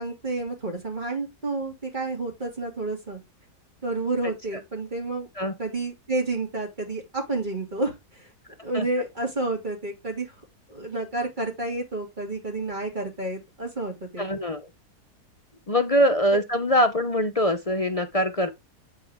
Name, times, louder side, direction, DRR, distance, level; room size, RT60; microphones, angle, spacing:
voice 1, 0.0-3.2 3.8-5.3 5.6-8.3 8.6-10.3 10.7-14.3, right 2 dB, 30° right, 3.0 m, -30 dB
voice 2, 14.2-14.7 15.7-18.5, equal, 35° left, 0.5 m, -23 dB
8.1 x 4.6 x 3.5 m
omnidirectional pair, 1.7 m